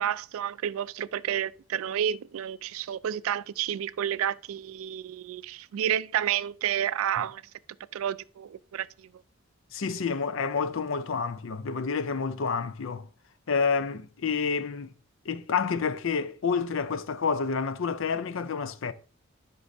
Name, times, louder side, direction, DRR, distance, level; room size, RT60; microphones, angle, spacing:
voice 1, 0.0-7.4 7.9-9.1, right 10 dB, 75° right, 0.3 m, -30 dB
voice 2, 9.7-13.1 13.5-14.9 15.3-18.9, left 5 dB, 65° left, 0.5 m, -29 dB
11.5 x 5.4 x 2.6 m
head